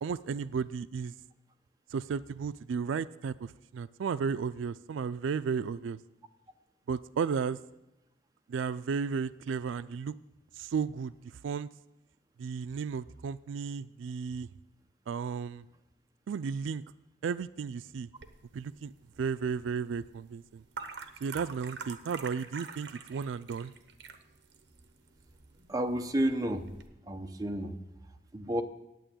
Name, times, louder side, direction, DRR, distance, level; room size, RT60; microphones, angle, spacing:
voice 1, 0.0-1.1 1.9-6.0 6.9-7.6 8.5-10.1 10.6-11.7 12.4-14.5 15.1-15.6 16.3-16.8 17.2-18.1 18.5-18.9 19.2-20.6 21.2-23.7, right 6 dB, 85° right, 16 dB, 0.3 m, -34 dB
sound 1, 18.2-26.9, right 5 dB, 65° right, 0.9 m, -47 dB
voice 2, 25.7-26.7 27.1-27.7 28.3-28.6, right 1 dB, 20° right, 5 dB, 0.7 m, -31 dB
9.2 x 8.6 x 8.9 m, 0.96 s
head